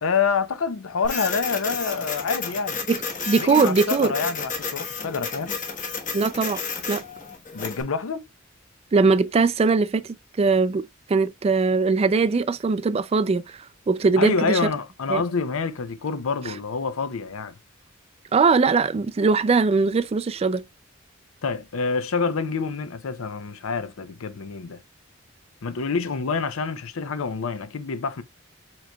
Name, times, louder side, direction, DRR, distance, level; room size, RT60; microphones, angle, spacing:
voice 1, 0.0-2.8 3.4-5.6 7.5-8.2 14.2-17.6 21.4-24.8 25.6-28.2, left 5 dB, 80° left, 0.6 m, -27 dB
Printer, 1.0-7.8, left 5 dB, 40° left, 1.1 m, -32 dB
voice 2, 2.9-4.1 6.1-6.6 6.9-7.0 8.9-10.0 10.4-14.6 15.1-15.2 18.3-20.6, right 4 dB, 30° right, 0.3 m, -21 dB
7.3 x 3.0 x 2.2 m
head